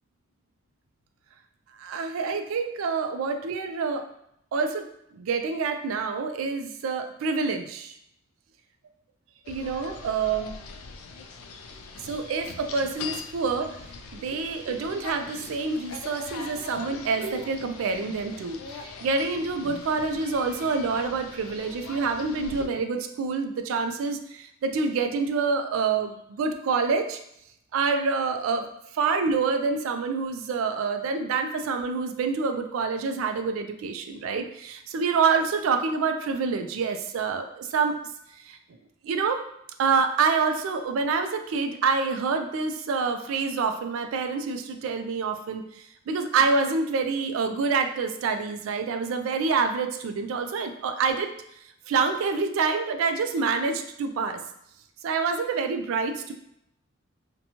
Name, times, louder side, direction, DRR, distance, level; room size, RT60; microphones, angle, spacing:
voice 1, 1.8-4.1 4.5-4.9 5.1-8.0 9.5-10.5 12.0-13.8 14.1-27.2 27.7-28.7 28.9-38.0 38.3-38.6 39.0-39.4 39.8-51.3 51.9-54.4 55.0-56.3, right 4 dB, 70° right, 7 dB, 0.3 m, -27 dB
sound 1, 9.4-22.7, left 4 dB, 90° left, 0.3 m, -42 dB
2.7 x 2.2 x 2.8 m, 0.75 s
head